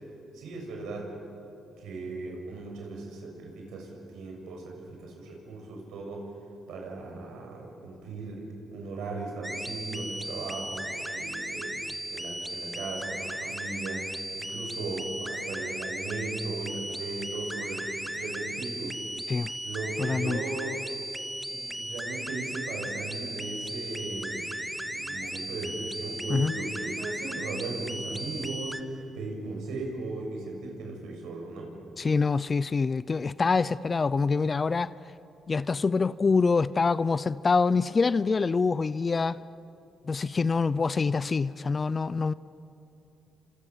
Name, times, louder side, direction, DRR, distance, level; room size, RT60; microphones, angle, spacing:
voice 1, 0.3-1.1 1.8-6.3 6.7-11.8 12.1-14.0 14.4-19.0 19.6-20.8 21.5-31.8, right 3 dB, 85° right, 1 dB, 6.9 m, -37 dB
sound 1, 9.4-28.8, right 1 dB, 5° right, 1.2 m, -36 dB
voice 2, 20.0-20.4 26.3-26.5 32.0-34.9 35.5-39.4 40.1-42.3, left 4 dB, 35° left, 18 dB, 0.5 m, -25 dB
29.5 x 26.0 x 7.5 m, 2.8 s
cardioid pair, 90°, 0 cm